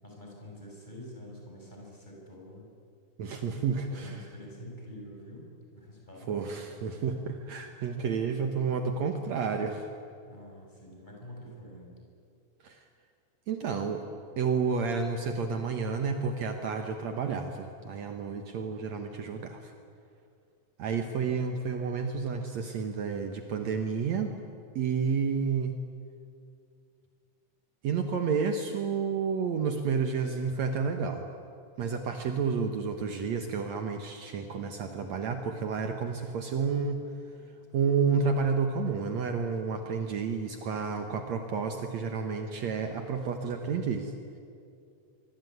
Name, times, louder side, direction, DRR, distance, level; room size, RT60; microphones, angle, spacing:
voice 1, 0.0-2.7 3.9-5.5 5.7-6.6 10.3-12.0, equal, 15° left, -2 dB, 6.9 m, -47 dB
voice 2, 3.2-4.2 6.3-9.9 12.6-12.8 13.5-14.0 14.4-19.7 20.8-24.3 24.8-25.7 27.8-31.3 31.8-37.0 37.7-44.1, right 5 dB, 65° right, 5 dB, 2.5 m, -30 dB
24.5 x 24.0 x 9.4 m, 2.4 s
omnidirectional pair, 3.6 m